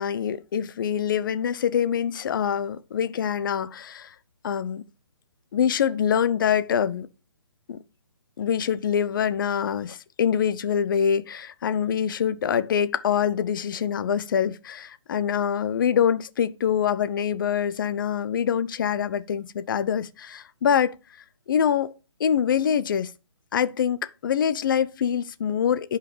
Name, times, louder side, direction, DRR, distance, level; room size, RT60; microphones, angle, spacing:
voice 1, 0.0-4.1 4.4-4.8 5.5-7.1 7.7-7.8 8.4-21.0 21.5-21.9 22.2-23.1 23.5-26.0, left 8 dB, 45° left, 0.8 m, -25 dB
11.5 x 4.9 x 5.0 m
figure-of-eight pair, 145°, 16 cm